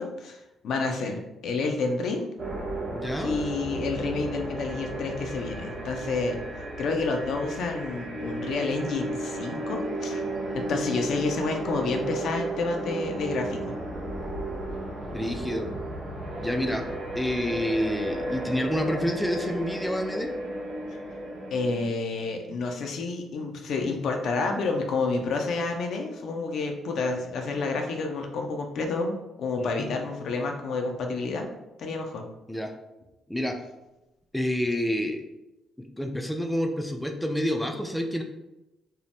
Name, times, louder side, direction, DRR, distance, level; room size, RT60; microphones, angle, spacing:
voice 1, 0.0-2.3 3.2-6.4 6.8-10.2 10.5-13.7 21.5-31.5 31.8-32.2, left 3 dB, 70° left, 3 dB, 0.4 m, -29 dB
sound 1, 2.4-21.9, right 1 dB, 50° right, 0.7 m, -34 dB
voice 2, 2.9-3.4 15.0-15.7 16.4-16.8 17.2-20.3 29.6-29.9 32.5-32.7 33.3-33.6 34.3-35.2 35.8-38.2, equal, 5° left, 3 dB, 0.3 m, -28 dB
2.7 x 2.0 x 3.3 m, 0.98 s
cardioid pair, 90°, 0 cm